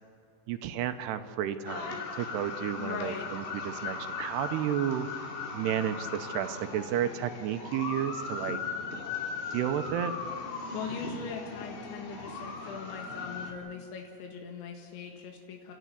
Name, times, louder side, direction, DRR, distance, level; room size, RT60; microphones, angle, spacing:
voice 1, 0.5-5.1 5.5-8.6 9.5-10.1, right 10 dB, 80° right, 8 dB, 2.8 m, -32 dB
sound 1, 1.7-13.5, left 4 dB, 70° left, 4.6 m, -38 dB
voice 2, 2.8-3.3 10.7-15.7, left 6 dB, 85° left, 2 dB, 4.1 m, -40 dB
29.5 x 13.0 x 9.9 m, 2.3 s
omnidirectional pair, 5.2 m